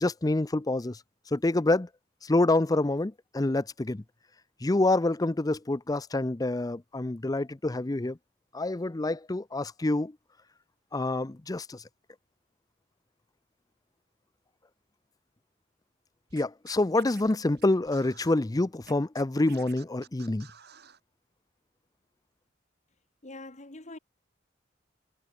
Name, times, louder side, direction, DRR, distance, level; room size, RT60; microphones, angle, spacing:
voice 1, 0.0-1.0 1.3-1.9 2.2-4.0 4.6-8.2 8.5-10.1 10.9-11.8 16.3-20.5, left 2 dB, 20° left, 0.5 m, -27 dB
Scratching (performance technique), 16.3-18.3 18.8-21.0, right 8 dB, 60° right, 5.7 m, -53 dB
voice 2, 23.2-24.0, left 2 dB, 40° left, 2.1 m, -44 dB
head